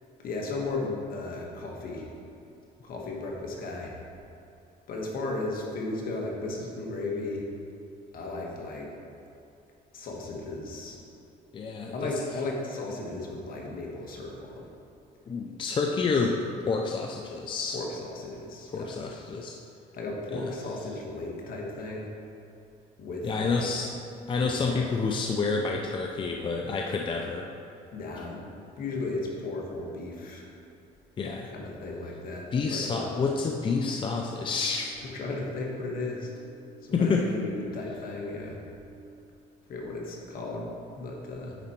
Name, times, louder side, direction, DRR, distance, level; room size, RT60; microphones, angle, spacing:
voice 1, 0.2-2.1 2.8-3.9 4.9-7.5 8.1-8.9 9.9-11.0 11.9-14.6 15.9-16.0 17.7-19.2 19.9-22.1 23.0-23.7 24.4-24.9 27.9-28.4 28.8-30.5 31.5-33.2 35.1-36.3 36.8-38.6 39.7-40.7 40.9-41.6, left 2 dB, 60° left, -1 dB, 1.5 m, -35 dB
voice 2, 11.5-12.1 15.3-16.4 16.6-17.8 18.7-19.6 20.3-20.4 23.2-23.9 24.3-27.5 31.2-31.5 32.5-35.0 36.9-37.2, left 4 dB, 30° left, 1 dB, 0.5 m, -28 dB
sound 1, 33.4-38.8, right 2 dB, 45° right, 1.5 m, -54 dB
9.1 x 4.4 x 4.4 m, 2.8 s
cardioid pair, 110°, 17 cm